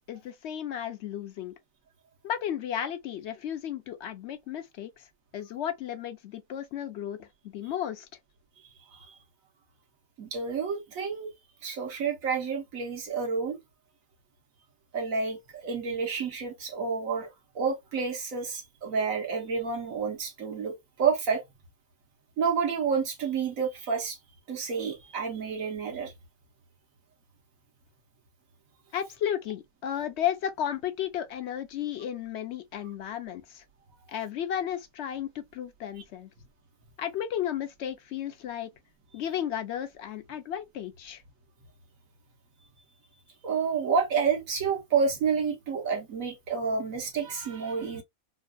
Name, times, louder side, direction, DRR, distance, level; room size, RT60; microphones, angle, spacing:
voice 1, 0.1-1.5 2.2-5.0 5.3-8.1 28.9-33.6 34.1-36.3 37.0-38.7 39.1-41.2, left 10 dB, 65° left, 0.7 m, -33 dB
voice 2, 10.2-11.3 11.6-13.6 14.9-17.3 17.5-21.4 22.4-24.2 24.5-26.1 43.4-48.0, right 5 dB, 75° right, 1.4 m, -29 dB
4.4 x 2.3 x 2.2 m
omnidirectional pair, 1.5 m